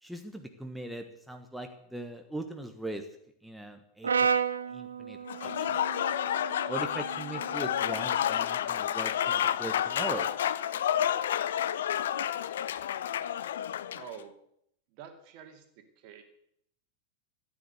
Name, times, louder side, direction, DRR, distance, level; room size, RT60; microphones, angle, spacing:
voice 1, 0.0-3.1 3.4-4.3 4.7-5.8 6.7-10.3, right 1 dB, ahead, 5 dB, 1.4 m, -40 dB
Brass instrument, 4.0-8.3, right 6 dB, 70° right, 0.6 m, -33 dB
Applause / Crowd, 5.3-14.1, left 10 dB, 60° left, 0.6 m, -30 dB
voice 2, 13.9-14.3 14.9-16.2, right 8 dB, 45° right, 6 dB, 2.6 m, -48 dB
14.5 x 9.9 x 8.1 m, 0.71 s
figure-of-eight pair, 90°, 0 cm